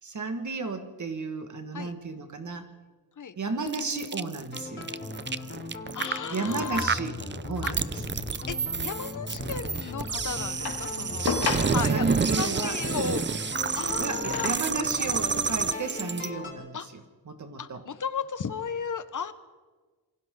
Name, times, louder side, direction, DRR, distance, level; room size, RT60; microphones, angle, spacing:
voice 1, 0.0-2.7 3.4-4.9 6.3-7.2 7.5-8.0 11.9-12.8 14.0-16.8 17.3-17.8, right 3 dB, 45° right, 6 dB, 2.0 m, -33 dB
sound 1, 3.7-16.3, right 5 dB, 30° right, 0.6 m, -30 dB
sound 2, 4.5-16.5, left 2 dB, 30° left, 5.9 m, -38 dB
voice 2, 5.9-6.9 7.6-7.7 8.5-11.3 11.7-13.3 13.7-14.5 16.7-16.9 17.6-19.3, left 6 dB, 50° left, 11 dB, 1.2 m, -34 dB
sound 3, 10.6-12.1 13.6-14.8 15.6-15.7, left 5 dB, 65° left, 2.6 m, -33 dB
27.5 x 24.5 x 3.9 m, 1.3 s
wide cardioid pair, 135°, 39 cm